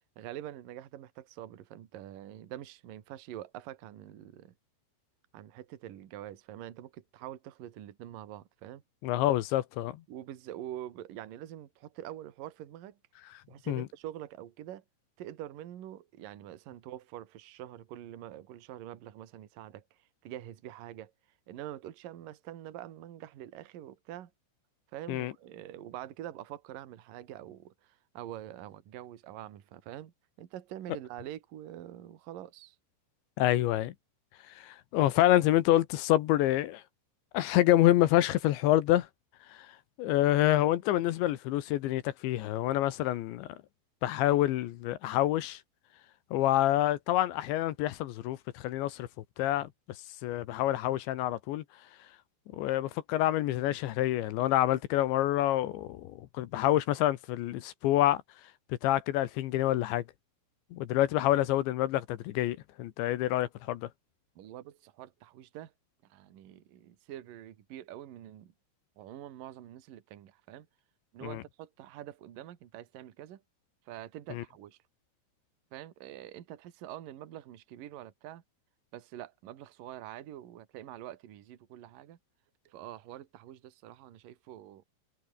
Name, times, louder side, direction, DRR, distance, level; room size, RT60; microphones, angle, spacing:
voice 1, 0.0-4.5 5.3-8.8 10.1-13.0 13.5-14.8 15.2-19.8 20.2-21.1 21.5-24.3 24.9-32.8 64.4-65.7 66.0-68.5 69.0-70.7 71.1-73.4 73.9-74.8 75.7-78.4 78.9-82.2 82.6-84.8, right 12 dB, 55° right, 2.8 m, -45 dB
voice 2, 9.0-10.0 13.7-13.9 25.1-25.3 33.4-33.9 34.6-36.8 37.3-39.1 39.5-39.7 40.0-43.5 44.0-45.6 46.3-49.1 49.4-49.7 50.2-51.6 52.5-58.2 58.7-60.0 60.7-63.9 71.2-71.4 74.3-74.4, left 14 dB, 70° left, 3.1 m, -27 dB
omnidirectional pair, 6.0 m